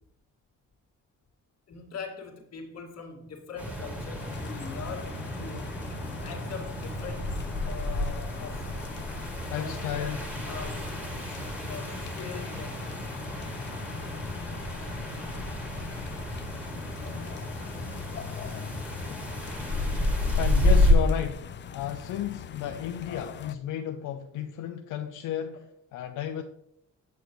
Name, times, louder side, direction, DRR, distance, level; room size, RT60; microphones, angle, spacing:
voice 1, 1.7-5.8 6.2-8.7 9.3-10.1 10.5-10.9 11.5-12.9 15.7-15.8, left 5 dB, 60° left, 1.9 m, -42 dB
sound 1, 3.6-20.9, left 1 dB, 5° right, 2.4 m, -30 dB
sound 2, 4.2-23.6, left 8 dB, 40° left, 0.5 m, -42 dB
voice 2, 9.5-10.2 17.1-17.4 20.3-26.4, left 10 dB, 85° left, 0.6 m, -33 dB
8.2 x 6.3 x 3.1 m
cardioid pair, 90°, 30 cm